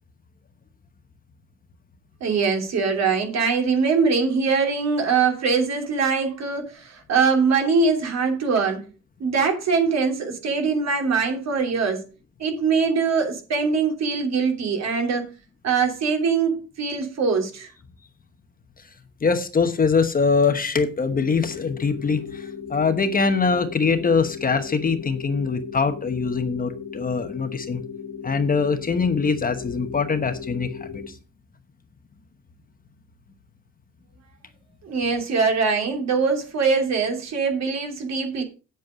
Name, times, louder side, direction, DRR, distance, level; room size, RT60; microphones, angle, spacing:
voice 1, 2.2-8.8 9.2-12.0 12.4-15.3 15.6-17.7 34.8-38.4, right 5 dB, 60° right, 3.0 m, -22 dB
voice 2, 19.2-27.8 28.2-31.2, left 5 dB, 30° left, 1.1 m, -23 dB
sound 1, 21.1-31.1, left 7 dB, 75° left, 2.3 m, -37 dB
9.2 x 8.1 x 5.1 m
cardioid pair, 150°, 30 cm